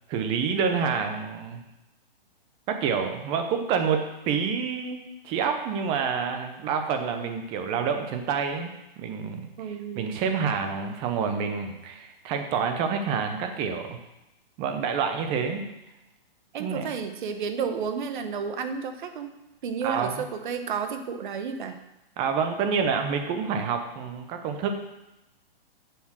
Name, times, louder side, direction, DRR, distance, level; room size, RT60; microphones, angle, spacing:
voice 1, 0.1-1.6 2.7-8.7 9.0-9.5 10.0-14.0 14.6-15.7 16.6-16.9 19.8-20.2 22.2-24.7, right 6 dB, 15° right, 6 dB, 0.7 m, -28 dB
voice 2, 9.6-10.2 16.5-19.3 19.6-21.8, right 6 dB, 55° right, 8 dB, 1.1 m, -32 dB
7.1 x 7.0 x 6.3 m, 0.93 s
hypercardioid pair, 155°, 30 cm